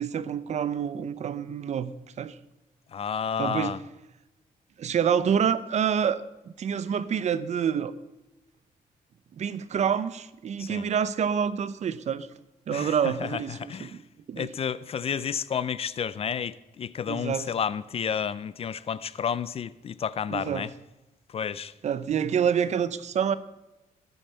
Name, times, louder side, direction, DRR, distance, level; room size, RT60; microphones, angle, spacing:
voice 1, 0.0-2.4 3.4-3.7 4.8-6.2 6.6-7.9 9.3-12.3 12.7-14.0 14.3-14.5 17.1-17.5 20.3-20.7 21.8-23.3, right 8 dB, 50° right, 0.8 m, -27 dB
voice 2, 2.9-3.8 10.6-10.9 12.7-14.0 14.4-20.7 21.3-21.7, left 7 dB, 40° left, 0.5 m, -31 dB
15.5 x 11.0 x 6.7 m
wide cardioid pair, 180°, 15 cm